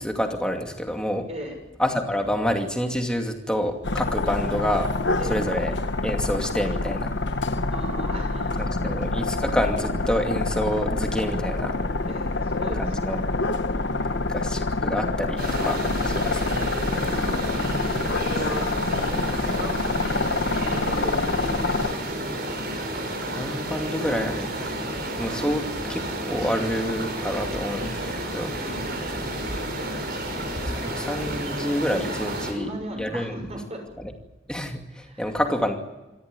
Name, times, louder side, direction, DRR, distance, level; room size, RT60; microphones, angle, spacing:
voice 1, 0.0-1.3 1.8-4.9 5.3-5.7 6.0-7.2 8.6-11.7 12.8-13.2 14.3-15.8 16.0-16.7 23.3-24.6 25.2-28.5 29.2-29.3 30.6-32.7 33.0-33.4 34.0-34.1 34.5-35.8, equal, 5° left, 3 dB, 2.4 m, -28 dB
sound 1, 3.8-21.9, left 3 dB, 65° left, 1.2 m, -26 dB
voice 2, 7.7-9.2 12.0-13.2 13.7-14.4 17.1-19.3 19.6-22.0 28.6-29.1 32.2-33.9 35.0-35.3, right 1 dB, 35° right, 3 dB, 6.5 m, -38 dB
sound 2, 15.4-32.5, right 1 dB, 55° right, 6.5 m, -31 dB
26.5 x 13.5 x 9.8 m, 1.1 s
head